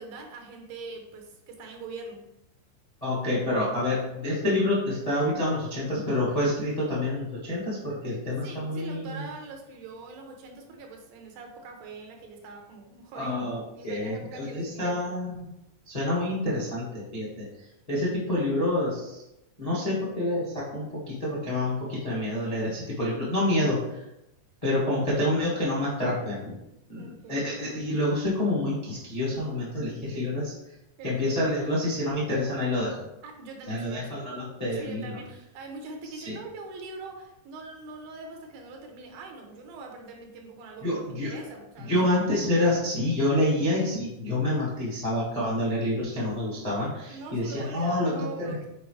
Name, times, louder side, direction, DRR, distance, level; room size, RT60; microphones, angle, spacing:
voice 1, 0.0-2.2 8.4-13.4 13.7-15.0 26.9-27.5 31.0-31.4 33.2-34.2 34.7-41.9 47.1-48.7, right 3 dB, 80° right, 2 dB, 2.8 m, -42 dB
voice 2, 3.0-9.3 13.1-15.5 15.9-17.5 17.9-19.2 19.6-24.0 24.6-26.5 26.9-30.5 31.0-33.0 33.7-35.2 36.1-36.4 40.8-41.3 41.8-48.6, left 1 dB, 80° left, -6 dB, 0.3 m, -28 dB
6.8 x 4.5 x 3.3 m, 0.87 s
omnidirectional pair, 4.2 m